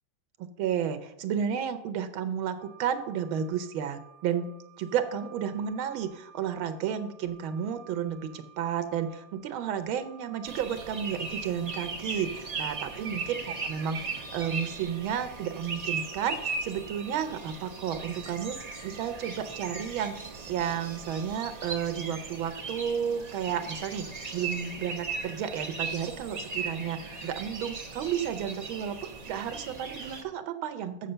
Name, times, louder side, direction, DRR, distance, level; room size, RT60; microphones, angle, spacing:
voice 1, 0.4-20.2 20.5-29.0 29.3-31.1, right 8 dB, 85° right, 10 dB, 1.6 m, -32 dB
sound 1, 2.6-22.0, right 8 dB, 80° left, 2.5 m, -55 dB
sound 2, 10.4-30.2, right 4 dB, 40° right, 0.5 m, -38 dB
6.7 x 6.6 x 6.7 m, 0.86 s
omnidirectional pair, 2.2 m